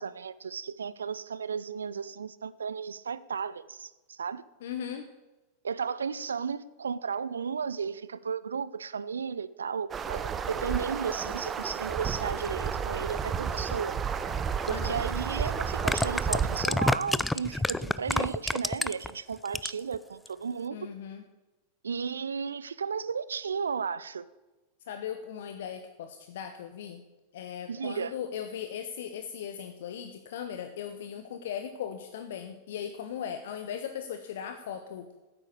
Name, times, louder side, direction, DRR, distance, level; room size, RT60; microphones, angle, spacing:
voice 1, 0.0-4.4 5.6-13.9 14.6-20.9 21.8-24.2 27.7-28.1, right 6 dB, 70° right, 17 dB, 0.4 m, -34 dB
voice 2, 4.6-5.1 14.7-15.0 20.7-21.2 24.9-27.0 27.3-35.1, left 8 dB, 55° left, 8 dB, 0.8 m, -38 dB
sound 1, 9.9-16.7, right 6 dB, 20° right, 0.7 m, -32 dB
sound 2, 14.7-14.8 15.7-19.1 19.4-19.9 20.3-20.4, left 2 dB, 5° left, 0.4 m, -28 dB
9.8 x 8.5 x 8.0 m, 1.1 s
figure-of-eight pair, 90°, 0 cm